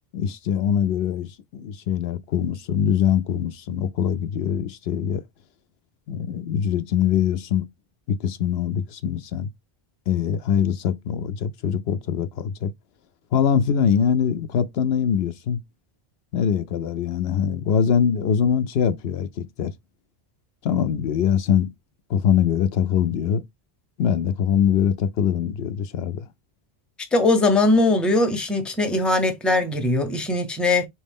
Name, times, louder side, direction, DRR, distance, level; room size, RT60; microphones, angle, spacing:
voice 1, 0.1-5.2 6.1-7.7 8.1-9.5 10.1-12.7 13.3-15.6 16.3-19.7 20.6-21.7 22.1-23.4 24.0-26.3, left 8 dB, 75° left, 0.8 m, -23 dB
voice 2, 27.1-30.9, left 2 dB, ahead, 0.6 m, -20 dB
4.1 x 3.2 x 3.4 m
omnidirectional pair, 1.1 m